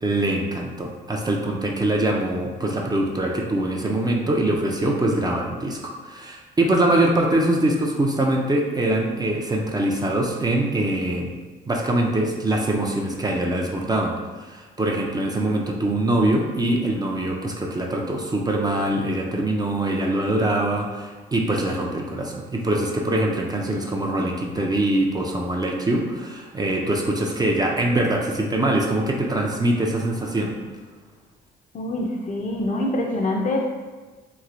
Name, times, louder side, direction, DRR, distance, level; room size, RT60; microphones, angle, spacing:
voice 1, 0.0-11.3 11.7-14.1 14.5-30.6, right 1 dB, 20° right, 0 dB, 0.4 m, -23 dB
voice 2, 31.7-33.7, left 1 dB, 40° left, 1 dB, 0.5 m, -25 dB
3.1 x 2.6 x 2.5 m, 1.3 s
supercardioid pair, 70°, 20 cm